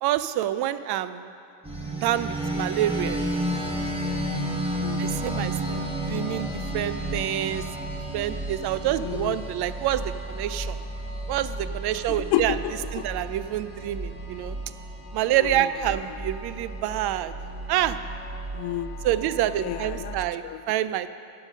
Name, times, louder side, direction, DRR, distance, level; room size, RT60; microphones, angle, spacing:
voice 1, 0.0-1.2 2.0-3.2 5.0-5.8 6.1-7.6 8.1-10.7 11.3-12.6 12.9-14.6 15.1-17.3 17.7-18.0 19.0-21.1, right 12 dB, 55° right, 14 dB, 0.5 m, -27 dB
sound 1, 1.6-20.3, right 1 dB, 10° right, 1.6 m, -32 dB
voice 2, 4.7-5.2 6.1-6.4 8.8-9.4 12.1-13.0 15.4-15.7 18.5-18.9 19.6-20.2 20.4-20.6, left 13 dB, 55° left, 13 dB, 0.6 m, -31 dB
10.5 x 5.8 x 6.3 m, 2.8 s
hypercardioid pair, 70°, 47 cm